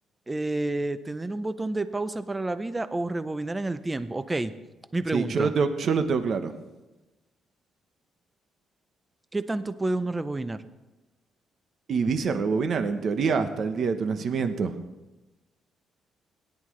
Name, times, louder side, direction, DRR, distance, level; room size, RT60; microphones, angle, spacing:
voice 1, 0.3-4.5 4.9-5.5 9.3-10.6, right 2 dB, 15° right, 12 dB, 0.5 m, -29 dB
voice 2, 5.1-6.5 11.9-14.8, right 5 dB, 50° right, 9 dB, 1.0 m, -26 dB
17.5 x 10.5 x 3.2 m, 1.1 s
cardioid pair, 125°, 0 cm